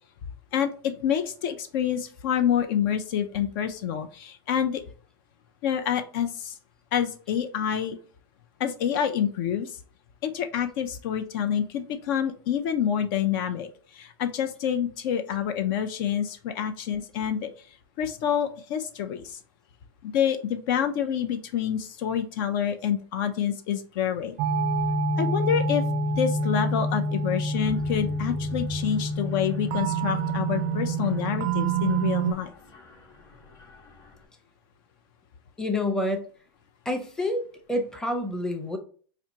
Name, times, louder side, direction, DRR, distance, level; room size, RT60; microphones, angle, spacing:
voice 1, 0.5-4.8 5.6-6.5 6.9-8.0 8.6-9.8 10.2-17.5 18.0-19.4 20.0-24.4 25.2-25.8 26.2-32.5, left 9 dB, 55° left, 7 dB, 0.4 m, -27 dB
sound 1, 24.4-32.3, right 3 dB, 50° right, 0.4 m, -27 dB
Mechanisms, 27.5-34.3, equal, 25° left, 1.0 m, -46 dB
voice 2, 35.6-36.3 36.8-38.8, left 1 dB, 5° left, 3 dB, 0.6 m, -28 dB
4.2 x 2.5 x 2.7 m, 0.43 s
hypercardioid pair, 115°, 13 cm